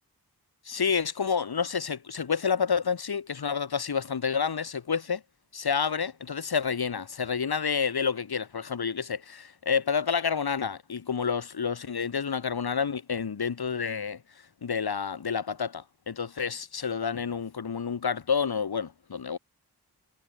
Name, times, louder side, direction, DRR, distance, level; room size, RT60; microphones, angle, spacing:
voice 1, 0.7-5.2 5.5-14.2 14.6-19.4, left 6 dB, 70° left, 2.1 m, -29 dB
wide cardioid pair, 100°, 39 cm